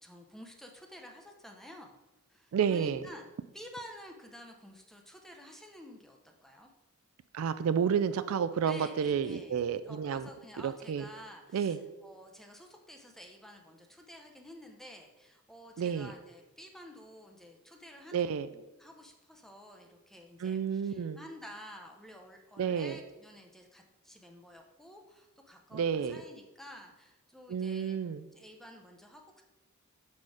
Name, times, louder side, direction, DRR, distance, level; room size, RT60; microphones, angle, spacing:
voice 1, 0.0-2.0 2.3-3.3 3.5-6.7 8.6-9.6 9.9-28.0 28.3-29.4, left 1 dB, ahead, 3 dB, 0.6 m, -51 dB
voice 2, 2.5-3.0 7.3-10.3 10.6-11.0 11.5-11.8 15.8-16.1 18.1-18.5 20.4-21.2 22.6-23.0 25.7-26.2 27.5-28.3, right 7 dB, 75° right, 13 dB, 0.3 m, -30 dB
6.3 x 4.2 x 4.7 m, 1.1 s
head